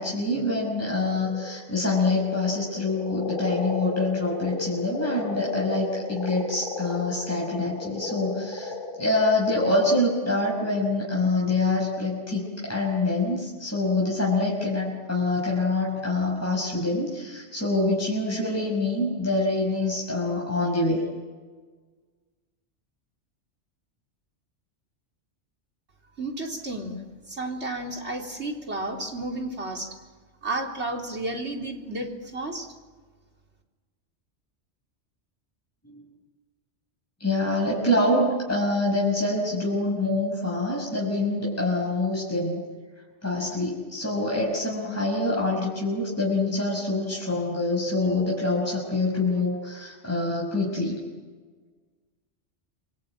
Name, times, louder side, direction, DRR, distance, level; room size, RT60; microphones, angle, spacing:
voice 1, 0.0-21.0 35.9-36.0 37.2-42.6 43.2-51.0, left 2 dB, 10° left, -4 dB, 5.8 m, -25 dB
sound 1, 1.1-9.2, left 3 dB, 45° left, 4.5 m, -35 dB
voice 2, 26.2-30.0 30.4-32.7, right 2 dB, 70° right, 1 dB, 4.0 m, -32 dB
28.0 x 23.5 x 9.0 m, 1.4 s
omnidirectional pair, 1.2 m